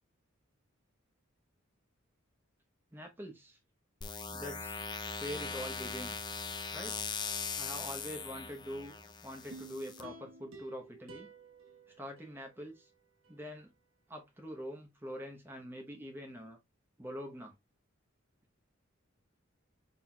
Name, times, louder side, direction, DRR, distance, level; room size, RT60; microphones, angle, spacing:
voice 1, 2.9-3.6 4.3-4.9 5.2-6.2 6.7-7.0 7.6-8.9 9.2-11.3 12.0-12.9 13.3-13.7 14.1-16.6 17.0-17.6, equal, 10° right, 0.9 m, -44 dB
sound 1, 4.0-10.0, left 5 dB, 20° left, 0.5 m, -40 dB
sound 2, 9.5-12.8 13.2-13.3, right 2 dB, 75° right, 1.3 m, -52 dB
5.7 x 4.2 x 2.2 m
head